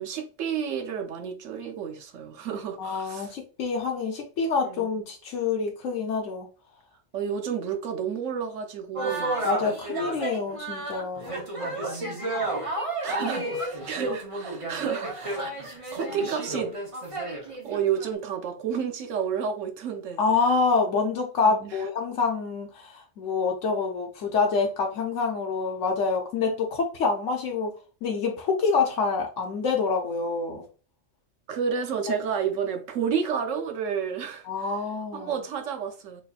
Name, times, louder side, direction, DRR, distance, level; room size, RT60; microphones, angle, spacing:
voice 1, 0.0-3.3 4.6-4.9 7.1-9.4 13.0-15.5 15.9-16.8 17.6-20.2 21.4-21.8 31.5-34.7 35.1-36.2, right 7 dB, 85° right, 1.1 m, -31 dB
voice 2, 2.8-6.5 9.4-11.4 20.2-27.7 28.0-30.6 32.1-32.2 34.4-35.4, left 4 dB, 80° left, 1.1 m, -26 dB
sound 1, 8.9-18.1, right 2 dB, 30° right, 0.9 m, -32 dB
4.1 x 3.1 x 2.4 m
omnidirectional pair, 1.3 m